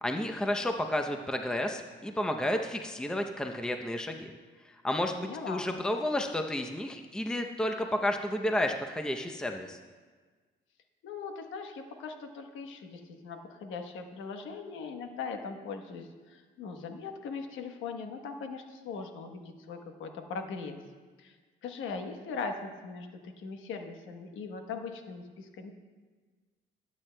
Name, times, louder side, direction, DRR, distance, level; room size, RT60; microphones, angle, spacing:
voice 1, 0.0-4.3 4.8-9.8, left 1 dB, 5° left, 4 dB, 0.7 m, -31 dB
voice 2, 5.2-5.6 11.0-20.8 21.2-21.3 21.6-23.1 23.4-25.7, left 5 dB, 85° left, 5 dB, 1.1 m, -40 dB
18.5 x 8.9 x 2.2 m, 1.4 s
cardioid pair, 90°, 20 cm